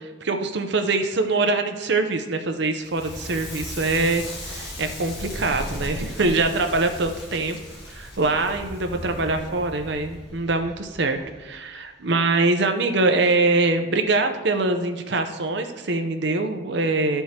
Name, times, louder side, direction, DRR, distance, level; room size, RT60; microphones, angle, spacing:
voice 1, 0.0-7.6 7.9-17.2, right 3 dB, 55° right, 6 dB, 0.7 m, -23 dB
Crackle, 2.8-11.8, left 1 dB, 60° left, 1.9 m, -37 dB
12.5 x 4.5 x 2.9 m, 1.3 s
head